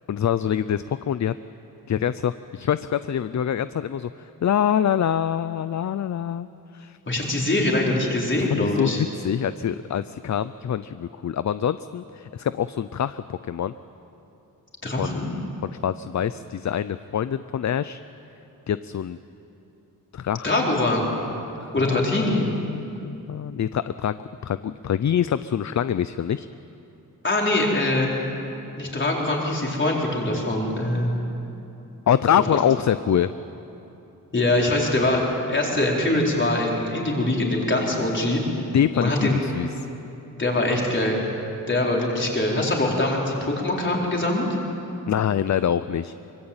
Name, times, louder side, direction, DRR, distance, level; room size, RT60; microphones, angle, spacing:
voice 1, 0.1-1.3 1.9-6.5 6.7-7.0 8.4-13.7 15.0-18.0 18.7-19.2 20.1-20.5 21.6-24.2 24.4-26.5 32.1-33.3 38.7-39.9 45.1-46.1, left 9 dB, 55° left, 14 dB, 0.5 m, -25 dB
voice 2, 7.1-9.0 14.8-15.4 20.4-21.1 21.7-22.5 27.2-28.1 28.8-31.1 34.3-38.4 38.9-39.4 40.4-41.2 41.7-44.5, left 1 dB, 35° left, -2 dB, 4.4 m, -23 dB
25.0 x 23.5 x 8.8 m, 2.9 s
wide cardioid pair, 175°, 35 cm